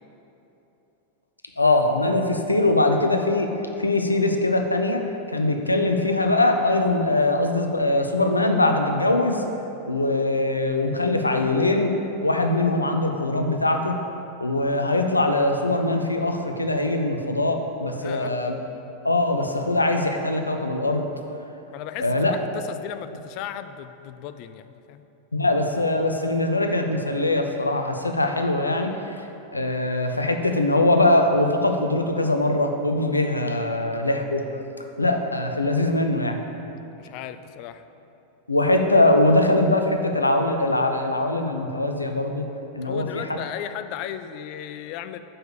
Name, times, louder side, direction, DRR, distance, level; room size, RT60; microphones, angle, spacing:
voice 1, 1.6-3.5 3.8-5.0 5.3-9.4 9.9-12.0 12.2-14.0 14.4-18.6 19.0-21.0 22.0-22.3 25.3-29.2 29.5-34.4 35.0-36.4 38.5-42.4 42.7-43.3, left 2 dB, 80° left, 5 dB, 0.6 m, -22 dB
voice 2, 18.0-18.3 21.7-25.0 37.0-37.8 42.8-45.2, left 10 dB, 45° left, 11 dB, 0.4 m, -36 dB
6.9 x 5.6 x 7.1 m, 3.0 s
figure-of-eight pair, 90°, 0 cm